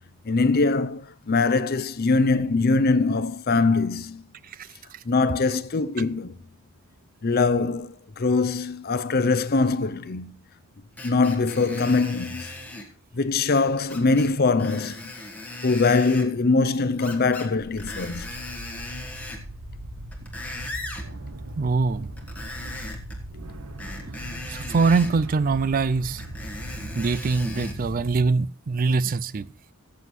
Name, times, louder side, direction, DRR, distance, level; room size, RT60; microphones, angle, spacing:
voice 1, 0.2-4.2 5.1-6.4 7.2-10.3 11.0-12.5 13.1-15.1 15.6-18.3, left 3 dB, 45° left, 0.6 m, -22 dB
Screech, 11.0-12.9 13.9-14.3 14.6-16.3 17.0-17.5 17.8-19.5 20.0-21.1 22.2-23.2 23.8-25.1 26.2-27.8 28.4-28.5, left 2 dB, 5° left, 1.4 m, -38 dB
sound 1, 17.6-28.3, right 1 dB, 75° right, 1.2 m, -39 dB
voice 2, 21.6-22.1 24.0-24.2 24.5-26.2 27.0-29.5, right 4 dB, 40° right, 0.4 m, -23 dB
16.5 x 7.7 x 3.2 m
head